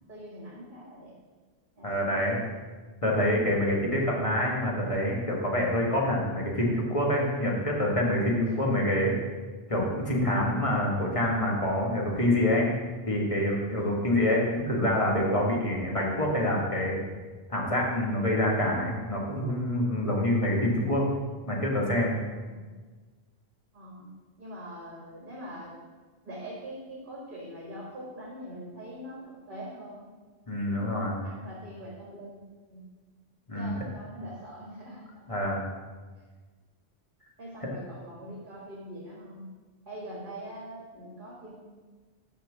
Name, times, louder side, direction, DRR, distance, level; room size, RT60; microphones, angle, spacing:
voice 1, 0.1-1.1 1.8-2.4 13.8-14.0 22.5-22.7 23.7-24.1 24.4-25.7 26.3-30.1 30.7-32.4 32.7-32.9 33.5-35.0 37.4-39.4 39.9-41.6, right 1 dB, 55° right, -4 dB, 2.0 m, -43 dB
voice 2, 1.8-2.4 3.0-9.1 9.7-12.7 13.1-17.0 17.5-21.1 21.5-22.2 30.5-31.2 33.5-33.7 35.3-35.6 37.6-37.7, left 1 dB, 30° left, -2 dB, 1.6 m, -26 dB
6.7 x 5.7 x 7.3 m, 1.4 s
omnidirectional pair, 1.1 m